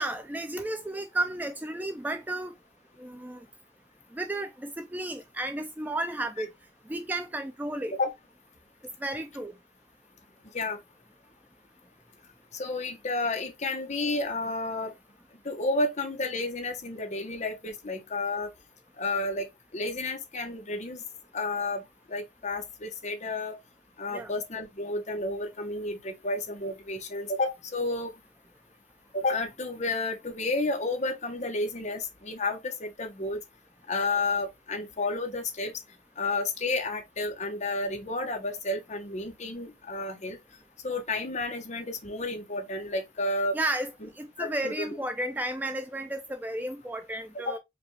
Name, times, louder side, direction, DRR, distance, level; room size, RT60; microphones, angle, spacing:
voice 1, 0.0-2.5 3.0-3.4 4.1-6.5 6.9-7.9 9.0-9.5 24.1-24.3 43.5-43.9 44.2-47.6, right 1 dB, 10° right, 0.3 m, -33 dB
voice 2, 12.5-14.9 15.4-18.5 19.0-21.0 21.3-21.8 22.1-23.5 24.0-28.1 29.1-33.4 33.9-35.7 36.2-40.4 40.8-43.6 44.0-44.1 44.4-44.9 47.3-47.6, left 2 dB, 40° left, 0.9 m, -31 dB
4.9 x 2.4 x 3.0 m
head